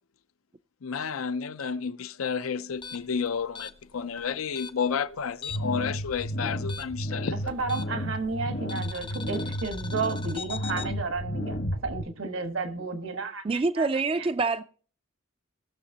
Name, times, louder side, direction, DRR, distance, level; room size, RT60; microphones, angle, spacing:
voice 1, 0.8-7.4, left 6 dB, 85° left, 0.5 m, -31 dB
sound 1, 2.7-5.8 6.1-8.2 8.7-10.9, left 5 dB, 25° left, 0.6 m, -41 dB
sound 2, 5.5-12.0, equal, 60° left, 1.1 m, -33 dB
voice 2, 7.3-13.9 14.2-14.3, right 4 dB, 70° right, 1.4 m, -32 dB
voice 3, 13.4-14.6, right 3 dB, 25° right, 0.4 m, -26 dB
19.5 x 6.6 x 2.8 m
head